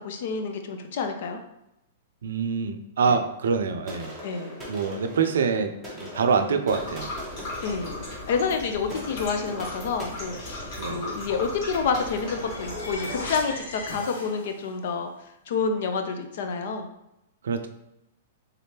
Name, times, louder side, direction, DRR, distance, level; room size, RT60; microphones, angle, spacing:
voice 1, 0.0-1.4 4.2-4.6 7.6-7.9 8.3-15.1 15.5-16.9, left 5 dB, 50° left, 6 dB, 0.4 m, -28 dB
voice 2, 2.2-4.1 4.7-7.1 10.8-11.0 17.4-17.7, right 5 dB, 85° right, 7 dB, 0.4 m, -25 dB
sound 1, 3.9-13.5, equal, ahead, 0.9 m, -41 dB
sound 2, 6.7-13.4, left 2 dB, 30° left, 1.1 m, -38 dB
sound 3, 11.8-14.8, left 1 dB, 90° left, 1.2 m, -37 dB
3.6 x 3.5 x 2.8 m, 0.85 s
hypercardioid pair, 170°, 0 cm